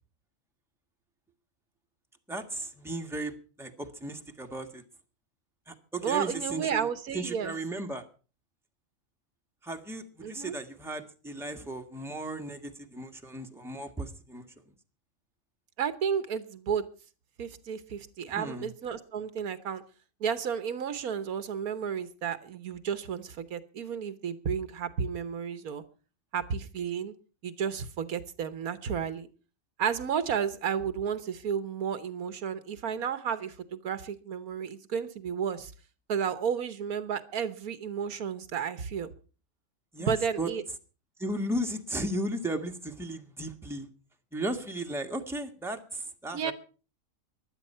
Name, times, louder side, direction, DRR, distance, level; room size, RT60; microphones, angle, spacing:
voice 1, 2.3-4.8 5.7-6.9 7.1-8.0 9.6-14.5 18.3-18.7 39.9-40.5 41.2-43.9 44.3-46.5, right 1 dB, ahead, 4 dB, 1.5 m, -35 dB
voice 2, 6.0-7.5 10.2-10.5 15.8-16.8 17.4-19.8 20.2-25.8 26.3-27.1 27.4-29.3 29.8-35.7 36.1-39.1 40.0-40.6 46.3-46.5, right 7 dB, 80° right, 13 dB, 1.6 m, -32 dB
16.0 x 11.0 x 5.6 m, 0.37 s
omnidirectional pair, 1.5 m